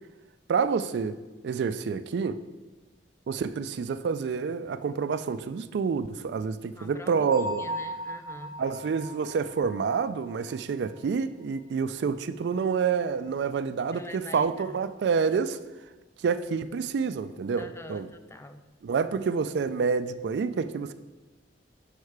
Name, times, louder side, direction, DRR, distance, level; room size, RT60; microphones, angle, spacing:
voice 1, 0.5-1.2 1.4-2.4 3.3-7.7 8.6-15.6 16.2-18.1 18.8-20.9, right 5 dB, 70° right, 12 dB, 0.3 m, -28 dB
voice 2, 6.8-7.1 7.6-8.5 13.9-14.7 17.6-18.6, left 1 dB, 15° left, 8 dB, 0.4 m, -45 dB
Bell, 7.3-11.0, right 1 dB, 30° right, 0.7 m, -38 dB
6.5 x 5.4 x 4.7 m, 1.2 s
head